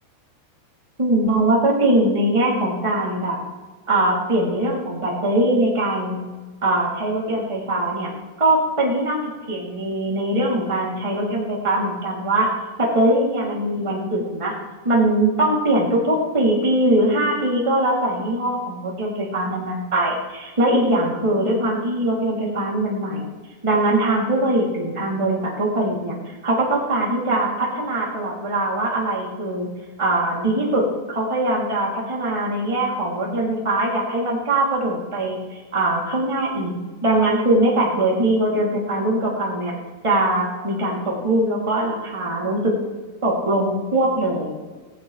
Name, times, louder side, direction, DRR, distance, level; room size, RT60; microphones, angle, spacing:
voice 1, 1.0-3.4 3.9-6.2 6.6-8.1 8.4-9.2 9.5-12.5 12.8-14.5 14.8-23.2 23.6-29.7 30.0-36.7 37.0-39.7 40.0-42.7 43.2-44.5, right 1 dB, 10° right, -4 dB, 2.5 m, -21 dB
18.5 x 15.5 x 3.4 m, 1.3 s
omnidirectional pair, 4.7 m